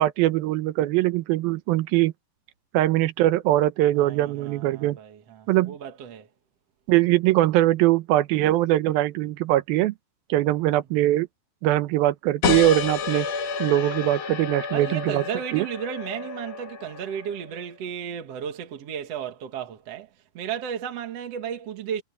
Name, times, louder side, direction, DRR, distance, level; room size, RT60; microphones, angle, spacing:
voice 1, 0.0-2.1 2.7-5.0 5.5-5.8 6.9-9.9 10.3-11.3 11.6-13.3 13.6-15.2 15.5-15.7, right 15 dB, 90° right, 2.7 m, -22 dB
voice 2, 4.0-6.3 14.7-20.1 20.3-22.0, right 8 dB, 55° right, 2.2 m, -34 dB
sound 1, 12.4-17.6, left 5 dB, 50° left, 2.9 m, -30 dB
omnidirectional pair, 4.2 m